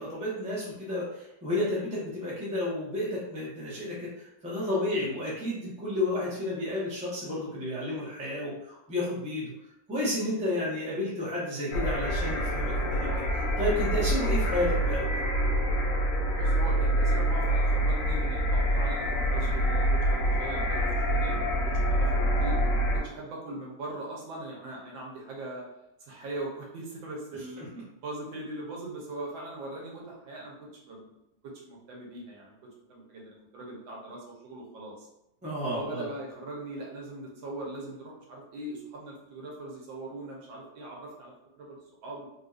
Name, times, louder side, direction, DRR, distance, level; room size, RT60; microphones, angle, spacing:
voice 1, 0.0-9.5 9.9-15.2 27.6-27.7 35.4-36.1, left 1 dB, 10° right, -7 dB, 0.4 m, -31 dB
sound 1, 11.7-23.0, right 1 dB, 90° left, 0.7 m, -26 dB
voice 2, 16.3-21.3 21.6-22.6 22.9-25.6 26.0-27.6 28.0-31.1 31.4-32.6 32.9-35.1 35.7-42.3, right 2 dB, 80° right, -2 dB, 1.6 m, -40 dB
3.5 x 2.7 x 2.4 m, 0.85 s
omnidirectional pair, 2.1 m